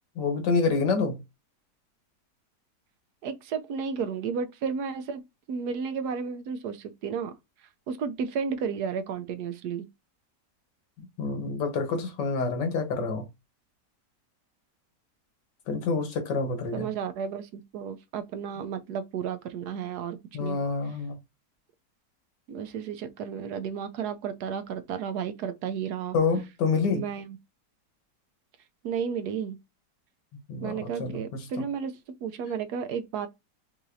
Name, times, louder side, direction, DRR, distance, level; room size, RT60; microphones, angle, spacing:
voice 1, 0.2-1.2 11.0-13.2 15.7-16.9 20.3-21.2 26.1-27.0 30.5-30.7 31.0-31.4, left 4 dB, 85° left, 1.7 m, -27 dB
voice 2, 3.2-5.2 5.5-7.3 7.9-9.9 16.7-20.6 22.5-26.2 26.9-27.4 28.8-29.6 30.6-33.3, right 6 dB, 70° right, 1.1 m, -33 dB
5.5 x 2.7 x 2.6 m
omnidirectional pair, 1.8 m